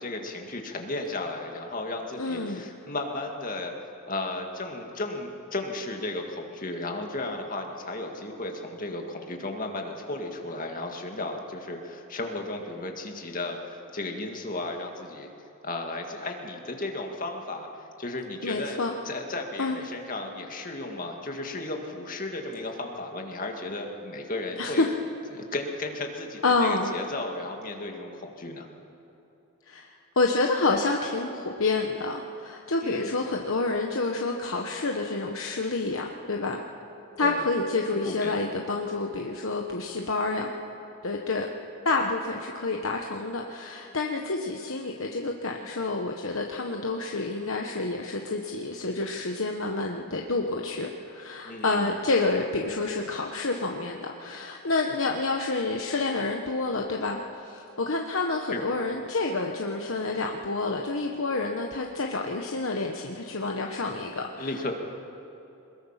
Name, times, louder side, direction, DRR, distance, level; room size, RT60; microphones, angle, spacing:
voice 1, 0.0-3.7 4.1-15.3 15.6-17.7 18.0-24.9 25.3-28.7 32.8-33.1 37.2-37.4 37.9-38.4 51.5-51.9 58.5-58.6 64.4-64.7, left 2 dB, 40° left, 2 dB, 2.0 m, -34 dB
voice 2, 2.2-2.7 18.4-18.9 19.6-19.8 24.6-24.9 26.4-26.9 29.7-29.9 30.2-36.6 37.2-40.5 41.0-41.5 41.8-64.7, left 3 dB, 65° left, 1 dB, 1.1 m, -28 dB
22.5 x 21.0 x 5.8 m, 3.0 s
head